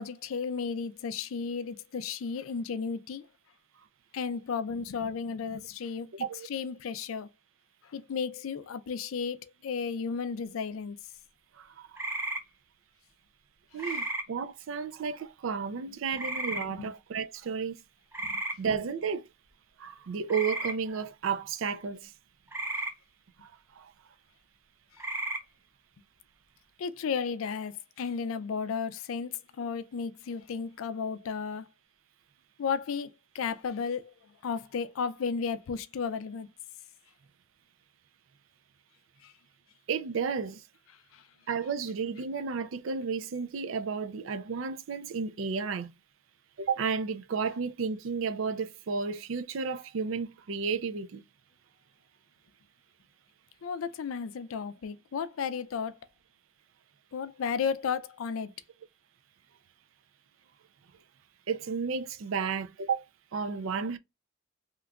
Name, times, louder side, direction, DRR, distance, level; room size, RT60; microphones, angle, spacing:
voice 1, 0.0-3.3 4.1-7.3 7.8-11.0 13.8-14.0 16.5-16.9 18.2-18.3 26.8-31.7 32.6-34.1 34.4-36.5 39.2-39.3 41.1-41.2 53.6-56.0 57.1-58.5, left 6 dB, 80° left, 0.4 m, -34 dB
voice 2, 6.1-6.5 11.6-11.9 13.7-17.8 18.6-19.3 19.8-22.1 23.4-23.5 23.8-23.9 39.9-40.6 41.5-45.9 46.6-51.2 61.5-63.1 63.3-64.0, right 5 dB, 70° right, 0.4 m, -32 dB
sound 1, 12.0-12.4 13.8-14.2 16.2-16.7 18.1-18.6 20.3-20.7 22.5-22.9 25.0-25.4, right 2 dB, 10° right, 0.5 m, -33 dB
2.9 x 2.3 x 3.5 m
head